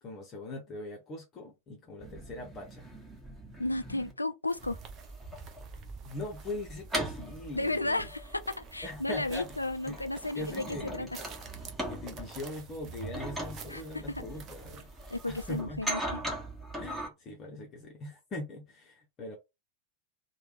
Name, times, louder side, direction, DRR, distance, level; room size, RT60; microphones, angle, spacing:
voice 1, 0.0-2.9 6.0-8.0 8.8-9.6 9.9-10.1 10.3-11.1 11.9-14.9 15.3-15.8 16.8-19.4, left 2 dB, 30° left, 0.8 m, -41 dB
sound 1, 2.0-4.1 4.6-17.1, right 1 dB, 10° right, 1.3 m, -40 dB
voice 2, 3.6-4.8 7.5-10.6 10.9-11.1 13.7-13.8 15.1-16.2, left 2 dB, 85° left, 0.4 m, -33 dB
sound 2, 4.5-15.6, right 7 dB, 30° right, 0.6 m, -51 dB
3.3 x 2.3 x 3.3 m
figure-of-eight pair, 90°, 0 cm